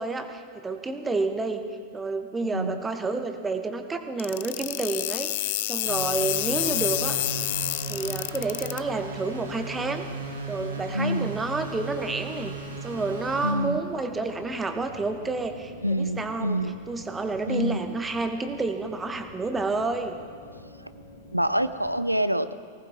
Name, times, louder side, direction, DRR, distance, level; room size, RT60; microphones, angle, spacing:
voice 1, 0.0-1.6 1.9-7.2 7.9-10.1 10.5-12.5 12.8-16.6 16.9-20.2, right 3 dB, 15° right, 7 dB, 1.1 m, -30 dB
sound 1, 4.2-8.8, left 16 dB, 50° left, 0.4 m, -28 dB
sound 2, 5.8-22.0, left 1 dB, 85° left, 2.7 m, -47 dB
sound 3, 5.8-13.5, right 3 dB, 70° right, 3.0 m, -37 dB
voice 2, 10.9-11.3 13.4-13.8 15.8-16.8 17.5-17.9 21.3-22.5, equal, 90° right, 13 dB, 0.5 m, -26 dB
19.5 x 18.0 x 3.6 m, 2.2 s
figure-of-eight pair, 95°, 0 cm